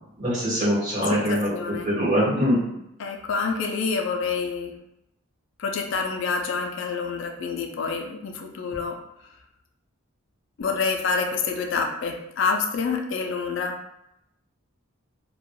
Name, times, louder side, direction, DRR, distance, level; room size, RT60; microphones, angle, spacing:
voice 1, 0.2-1.5 1.8-2.6, equal, 35° right, -9 dB, 1.1 m, -23 dB
voice 2, 1.1-1.9 3.0-4.7 5.6-8.9 10.6-13.7, left 5 dB, 55° left, 2 dB, 0.3 m, -27 dB
2.3 x 2.1 x 3.0 m, 0.83 s
head